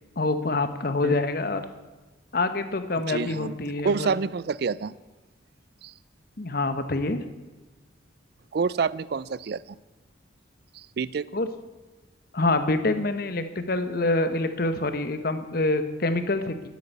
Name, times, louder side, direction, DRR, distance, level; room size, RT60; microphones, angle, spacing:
voice 1, 0.2-1.6 2.3-4.1 6.4-7.2 11.3-11.5 12.3-16.7, left 2 dB, 50° left, 10 dB, 0.9 m, -26 dB
voice 2, 3.1-3.6 3.8-4.9 5.8-5.9 8.5-9.6 10.7-11.3, right 5 dB, 55° right, 20 dB, 0.4 m, -27 dB
9.6 x 9.3 x 8.3 m, 1.2 s
head